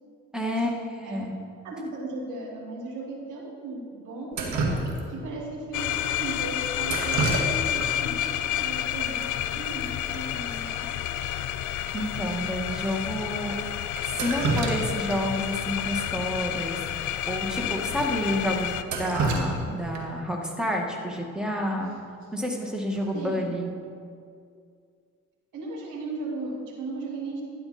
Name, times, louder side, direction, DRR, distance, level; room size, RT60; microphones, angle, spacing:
voice 1, 0.3-1.4 11.9-13.6 14.0-16.8 17.3-21.9 22.3-23.7, equal, ahead, 0 dB, 1.9 m, -29 dB
voice 2, 1.6-4.6 5.1-10.9 11.3-11.4 23.1-23.5 25.5-27.4, right 2 dB, 90° right, -1 dB, 2.4 m, -36 dB
Drip, 4.3-5.3 6.8-7.9 8.2-8.3 9.2-9.3 9.6-9.8 10.1-10.2 10.7-10.8 11.2-11.3 11.9-12.0 12.7-12.8 14.0-15.2 15.5-15.6 17.0-17.1 17.5-17.6 18.0-18.1 18.6-20.2 22.2-22.5 22.9-23.3, right 3 dB, 70° right, 2.0 m, -29 dB
sound 1, 5.7-18.8, left 11 dB, 80° left, 0.6 m, -30 dB
12.5 x 10.0 x 4.3 m, 2.3 s
cardioid pair, 90°, 30 cm